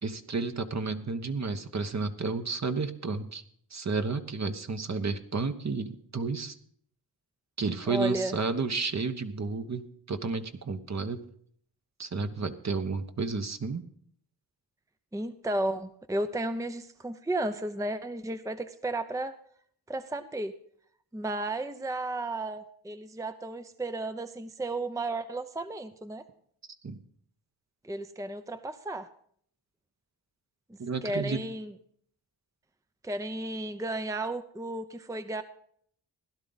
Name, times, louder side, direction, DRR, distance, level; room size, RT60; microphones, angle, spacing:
voice 1, 0.0-3.4 3.7-6.6 7.6-11.2 12.0-13.8 26.8-27.0 30.8-31.4, right 4 dB, 40° right, 8 dB, 1.1 m, -32 dB
voice 2, 7.9-8.3 15.1-19.3 19.9-20.5 21.1-26.2 27.8-29.1 30.7-31.7 33.0-35.4, right 1 dB, 10° right, 10 dB, 0.7 m, -33 dB
16.5 x 11.5 x 4.0 m, 0.62 s
cardioid pair, 60°, 40 cm